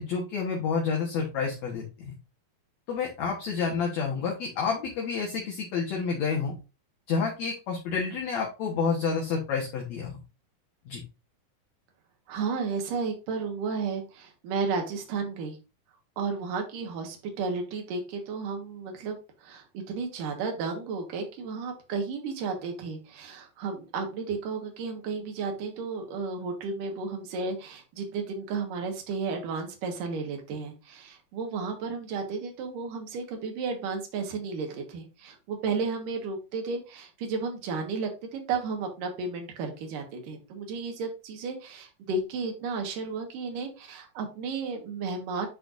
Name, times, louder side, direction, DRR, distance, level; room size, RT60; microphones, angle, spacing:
voice 1, 0.0-2.1 2.9-6.5 7.1-10.2 10.9-11.0, left 5 dB, 60° left, -1 dB, 2.3 m, -29 dB
voice 2, 12.3-15.6 16.2-45.5, right 4 dB, 70° right, 3 dB, 3.0 m, -33 dB
10.5 x 4.4 x 2.6 m, 0.30 s
omnidirectional pair, 4.1 m